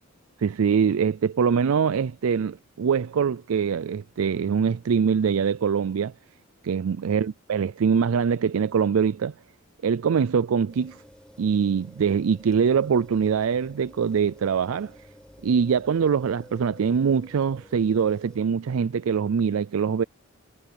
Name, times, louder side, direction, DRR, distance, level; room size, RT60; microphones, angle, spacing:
voice 1, 0.4-6.1 6.6-9.3 9.8-11.0 11.4-14.9 15.4-20.0, right 6 dB, 85° right, 0.4 m, -23 dB
sound 1, 10.7-18.4, equal, 5° left, 5.0 m, -51 dB
head